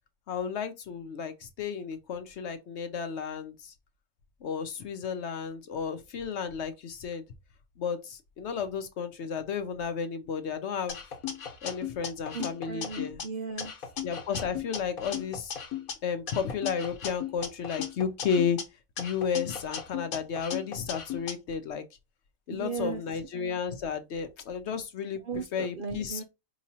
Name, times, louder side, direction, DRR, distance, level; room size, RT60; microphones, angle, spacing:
voice 1, 0.3-3.7 4.4-7.2 7.8-11.0 11.6-13.2 14.0-15.5 16.0-18.6 19.0-21.8 22.5-25.2 25.5-26.2, left 6 dB, 60° left, 0.8 m, -33 dB
sound 1, 10.9-13.2 13.6-15.9 16.3-18.6 19.0-21.3, left 8 dB, 85° left, 1.5 m, -37 dB
voice 2, 12.3-13.9 22.5-23.2 25.2-26.2, right 5 dB, 60° right, 0.5 m, -37 dB
4.7 x 3.0 x 2.7 m
omnidirectional pair, 1.4 m